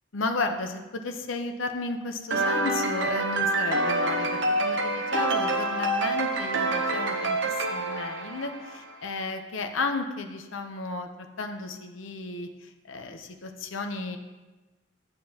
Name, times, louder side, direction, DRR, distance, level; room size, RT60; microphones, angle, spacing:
voice 1, 0.1-14.2, left 3 dB, 80° left, 5 dB, 0.8 m, -33 dB
sound 1, 2.3-8.9, right 2 dB, 65° right, 0.8 m, -27 dB
11.5 x 7.6 x 2.9 m, 1.2 s
head